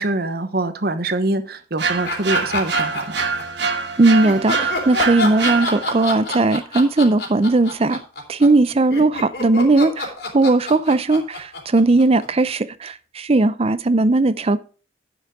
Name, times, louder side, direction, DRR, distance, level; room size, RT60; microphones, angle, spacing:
voice 1, 0.0-3.2, right 2 dB, 60° right, 1.1 m, -24 dB
sound 1, 1.8-6.1, right 5 dB, 75° right, 1.4 m, -25 dB
sound 2, 2.0-3.7 4.2-12.5, left 2 dB, 65° left, 3.3 m, -27 dB
voice 2, 4.0-8.0 8.3-14.6, right 2 dB, 35° right, 0.5 m, -17 dB
10.0 x 7.3 x 4.8 m
head